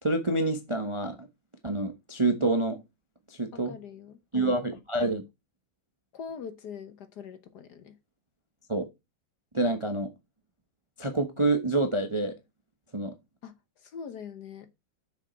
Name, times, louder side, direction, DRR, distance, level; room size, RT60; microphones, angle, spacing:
voice 1, 0.0-1.3 1.6-2.8 3.3-3.7 4.3-5.2 8.7-8.9 9.5-10.1 11.0-12.3 12.9-13.1, right 2 dB, 25° right, 0.7 m, -27 dB
voice 2, 3.5-4.6 6.1-8.0 13.4-14.7, left 7 dB, 60° left, 1.3 m, -43 dB
7.2 x 6.6 x 4.4 m
omnidirectional pair, 2.3 m